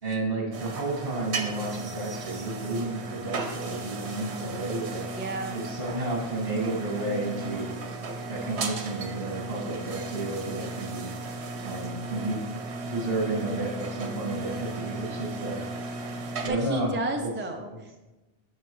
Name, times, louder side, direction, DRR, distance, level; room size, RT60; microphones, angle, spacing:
voice 1, 0.0-5.1 5.5-7.8 8.3-11.1 11.6-12.4 12.8-15.6 16.4-16.9 17.2-17.3, right 2 dB, 60° right, -2 dB, 2.1 m, -31 dB
sound 1, 0.5-16.5, right 3 dB, 80° right, 1.1 m, -35 dB
voice 2, 5.1-5.6 16.2-18.0, right 2 dB, 15° right, 3 dB, 0.5 m, -32 dB
9.4 x 6.7 x 3.1 m, 1.1 s
omnidirectional pair, 1.1 m